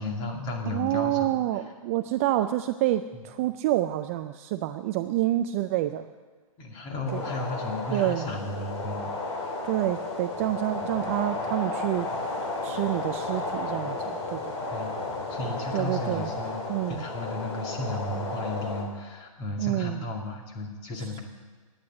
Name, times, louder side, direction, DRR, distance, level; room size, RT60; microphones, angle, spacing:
voice 1, 0.0-1.3 6.6-9.0 14.7-14.9 15.3-16.6 16.9-21.2, left 2 dB, 25° left, 2 dB, 2.3 m, -34 dB
voice 2, 0.7-6.1 7.1-7.2 7.9-8.3 9.6-12.1 12.6-14.6 15.7-16.3 16.7-17.0 19.6-20.1 21.0-21.2, right 14 dB, 25° right, 9 dB, 0.3 m, -28 dB
sound 1, 7.0-18.8, left 2 dB, 55° left, 3.6 m, -33 dB
11.5 x 9.7 x 9.7 m, 1.4 s
hypercardioid pair, 150°, 18 cm